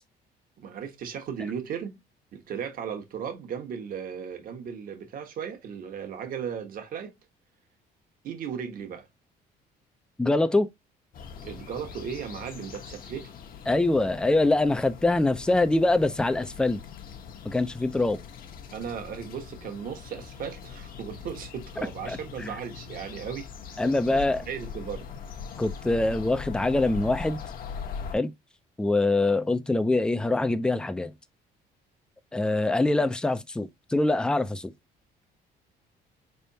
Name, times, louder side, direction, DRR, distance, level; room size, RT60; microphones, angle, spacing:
voice 1, 0.6-2.0 2.3-7.1 8.2-9.1 11.4-13.3 18.7-25.1, right 7 dB, 55° right, 1.2 m, -36 dB
voice 2, 10.2-10.7 13.7-16.8 17.4-18.2 22.1-22.5 23.8-24.4 25.6-27.4 28.1-28.3 28.8-31.1 32.3-34.7, left 2 dB, 5° left, 0.4 m, -24 dB
sound 1, 11.1-28.2, left 7 dB, 55° left, 1.0 m, -41 dB
4.3 x 3.4 x 2.7 m
cardioid pair, 110°, 17 cm